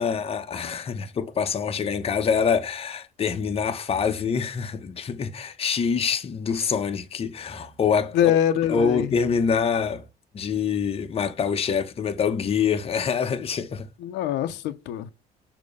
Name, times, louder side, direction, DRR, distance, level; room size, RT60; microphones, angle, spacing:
voice 1, 0.0-8.3 8.7-10.0 10.3-13.9, left 6 dB, 35° left, 1.0 m, -25 dB
voice 2, 8.1-9.1 14.0-15.1, left 10 dB, 85° left, 0.7 m, -23 dB
6.7 x 3.0 x 5.3 m
cardioid pair, 110°, 17 cm